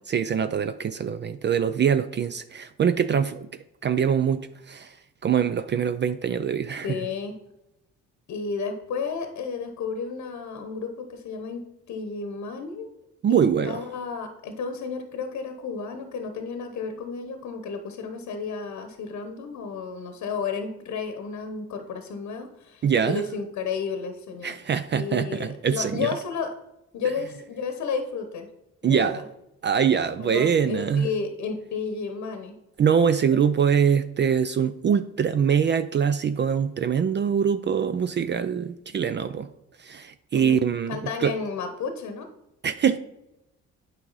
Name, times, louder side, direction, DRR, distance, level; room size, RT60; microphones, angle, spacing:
voice 1, 0.1-3.5 3.8-5.0 5.2-7.1 13.2-13.8 22.8-23.2 24.4-26.2 28.8-29.2 29.6-31.1 32.8-39.5 39.8-41.3 42.6-43.0, right 7 dB, 40° right, 12 dB, 0.4 m, -23 dB
voice 2, 6.8-7.4 8.3-12.9 13.3-24.5 24.9-26.5 26.9-28.5 28.8-29.2 30.2-32.6 40.3-40.6 40.9-42.3, left 5 dB, 70° left, 7 dB, 0.9 m, -32 dB
8.9 x 4.9 x 4.0 m, 0.88 s
cardioid pair, 90°, 30 cm